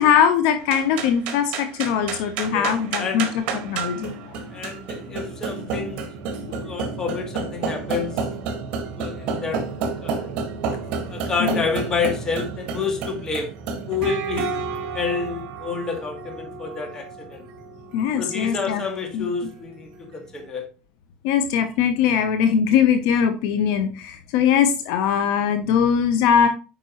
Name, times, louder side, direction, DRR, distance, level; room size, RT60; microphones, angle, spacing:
voice 1, 0.0-3.3 3.6-4.1 6.5-6.7 11.4-11.6 17.9-18.8 19.1-19.2 21.2-26.5, left 8 dB, 70° left, 8 dB, 1.0 m, -21 dB
sound 1, 0.6-20.1, right 5 dB, 55° right, 1.9 m, -31 dB
voice 2, 2.5-3.2 4.5-6.1 6.6-8.2 9.0-10.3 11.1-13.5 13.9-14.6 14.9-17.5 18.2-20.7, left 5 dB, 25° left, 3 dB, 2.3 m, -29 dB
8.7 x 5.3 x 3.1 m, 0.33 s
supercardioid pair, 125°, 2 cm